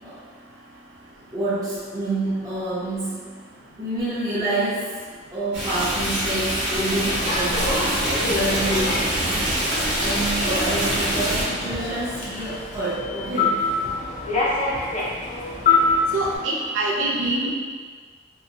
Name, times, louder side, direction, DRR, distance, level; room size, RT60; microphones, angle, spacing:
voice 1, 1.3-3.3 3.8-5.0 5.3-13.6, right 2 dB, 20° right, -13 dB, 0.6 m, -28 dB
Stream, 5.5-11.4, right 1 dB, 60° right, 0.9 m, -24 dB
Human voice / Subway metro underground, 6.9-16.4, left 3 dB, 35° left, 0.4 m, -26 dB
voice 2, 16.1-17.5, right 2 dB, 75° right, -3 dB, 0.4 m, -24 dB
2.7 x 2.0 x 2.4 m, 1.6 s
head